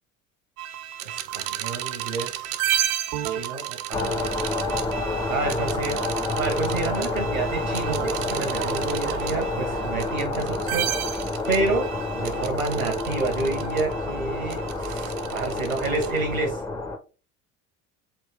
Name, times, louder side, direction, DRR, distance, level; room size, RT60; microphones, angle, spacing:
sound 1, 0.6-16.5, right 11 dB, 50° right, 0.5 m, -32 dB
voice 1, 1.0-2.5 3.3-4.3 5.3-6.0 6.4-10.9 11.5-11.9 12.1-16.6, right 3 dB, 85° right, 5 dB, 1.2 m, -29 dB
sound 2, 3.9-17.0, left 2 dB, 10° left, 0.4 m, -29 dB
3.6 x 2.6 x 3.4 m, 0.35 s
figure-of-eight pair, 60°, 40 cm